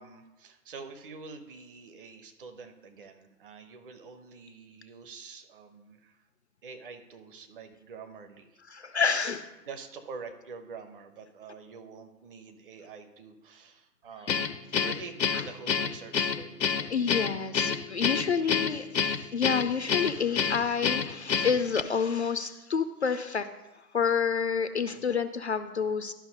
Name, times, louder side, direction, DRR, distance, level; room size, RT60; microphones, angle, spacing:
voice 1, 0.0-6.3 6.6-8.9 9.7-16.9 17.8-18.5 19.0-19.3 24.6-25.0, right 5 dB, 35° right, 7 dB, 0.8 m, -47 dB
voice 2, 8.7-9.5 15.3-15.4 16.9-23.5 23.7-26.1, left 6 dB, 45° left, 10 dB, 0.4 m, -29 dB
Guitar, 14.3-21.8, left 7 dB, 80° left, 0.7 m, -28 dB
11.5 x 5.6 x 5.3 m, 1.0 s
figure-of-eight pair, 125°, 50 cm